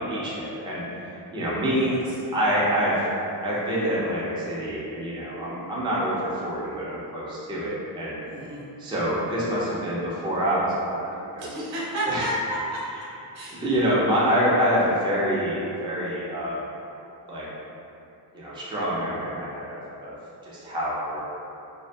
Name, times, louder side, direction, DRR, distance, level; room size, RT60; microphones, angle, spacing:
voice 1, 0.0-1.9 2.3-3.1 3.4-8.2 8.8-11.5 12.1-12.2 13.5-16.6 17.3-17.5 18.3-20.1 20.4-21.2, equal, 10° right, -8 dB, 0.4 m, -26 dB
voice 2, 8.3-8.7 11.4-12.8 13.3-13.6, right 1 dB, 85° right, -6 dB, 0.7 m, -31 dB
2.6 x 2.5 x 2.2 m, 2.8 s
wide cardioid pair, 150°, 43 cm